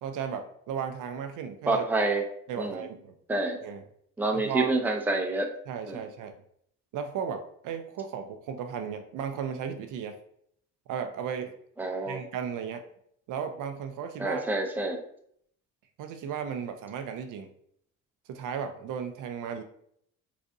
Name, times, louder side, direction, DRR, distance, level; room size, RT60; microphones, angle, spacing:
voice 1, 0.0-1.8 2.5-3.1 3.6-3.8 4.3-4.7 5.7-6.3 6.9-10.2 10.9-11.5 12.1-12.8 13.3-14.4 16.0-17.5 18.3-19.6, right 7 dB, 60° right, 7 dB, 0.5 m, -35 dB
voice 2, 1.7-2.2 2.6-2.8 3.3-3.6 4.2-5.5 5.9-6.0 11.8-12.2 14.2-15.0, right 2 dB, 5° right, 3 dB, 0.6 m, -27 dB
3.9 x 2.5 x 2.6 m, 0.67 s
hypercardioid pair, 65°, 36 cm